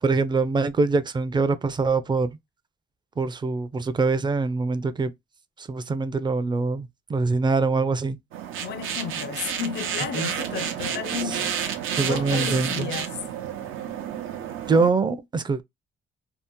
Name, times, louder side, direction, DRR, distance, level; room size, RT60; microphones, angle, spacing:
voice 1, 0.0-2.3 3.2-5.1 5.6-8.2 10.2-10.3 11.3-11.4 12.0-12.9 14.7-15.6, right 4 dB, 25° right, 0.4 m, -24 dB
sound 1, 8.3-14.9, right 8 dB, 85° right, 0.7 m, -30 dB
voice 2, 8.6-13.2, left 8 dB, 55° left, 0.4 m, -33 dB
2.8 x 2.0 x 3.5 m
cardioid pair, 90°, 20 cm